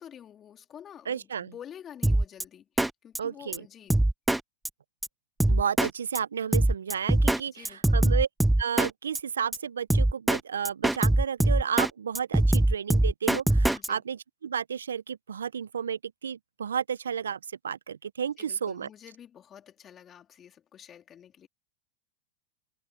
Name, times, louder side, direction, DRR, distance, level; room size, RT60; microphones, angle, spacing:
voice 1, 0.0-4.0 7.5-8.0 13.7-14.0 18.4-21.5, left 9 dB, 30° left, 3.3 m, -49 dB
voice 2, 1.1-1.5 3.2-3.6 5.5-8.3 8.6-18.9, right 7 dB, 85° right, 0.5 m, -32 dB
Drum kit, 2.0-2.4 2.8-2.9 3.1-3.2 3.5-3.6 3.9-4.4 4.6-4.7 5.0-5.1 5.4-5.9 6.1-6.2 6.5-7.4 7.6-8.9 9.1-9.2 9.5-9.6 9.9-10.4 10.6-11.9 12.1-13.9, right 1 dB, 5° right, 0.6 m, -22 dB
hypercardioid pair, 100°, 0 cm